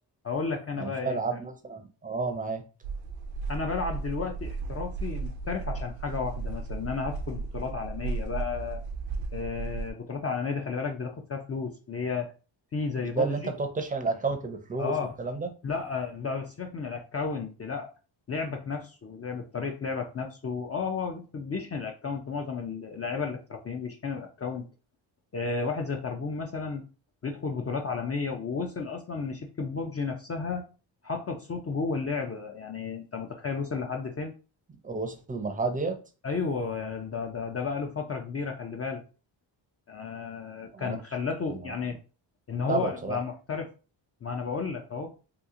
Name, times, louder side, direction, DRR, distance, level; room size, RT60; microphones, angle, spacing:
voice 1, 0.2-1.2 3.5-8.8 9.3-12.3 12.7-13.5 14.8-15.1 15.6-17.9 18.3-24.7 25.3-26.8 27.2-30.6 31.0-34.3 36.2-39.0 39.9-42.0 42.5-43.7 44.2-45.1, left 5 dB, 35° left, 0.4 m, -33 dB
voice 2, 0.8-2.6 13.0-14.9 15.2-15.5 34.8-36.0 40.7-41.0 41.5-41.7 42.7-43.2, right 4 dB, 20° right, 0.5 m, -31 dB
sound 1, 2.8-9.9, right 4 dB, 75° right, 0.6 m, -35 dB
2.9 x 2.4 x 3.6 m
cardioid pair, 110°, 47 cm